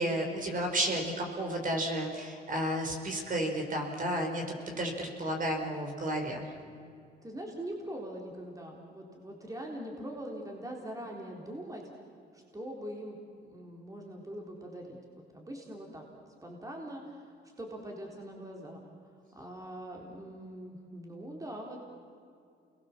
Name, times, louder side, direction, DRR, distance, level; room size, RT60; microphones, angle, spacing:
voice 1, 0.0-6.5, right 1 dB, 45° right, 2 dB, 5.0 m, -32 dB
voice 2, 7.2-11.9 12.3-15.0 15.3-16.0 16.4-18.9 19.3-21.8, right 1 dB, 15° right, 0 dB, 3.9 m, -42 dB
29.0 x 21.5 x 7.4 m, 2.4 s
cardioid pair, 90°, 20 cm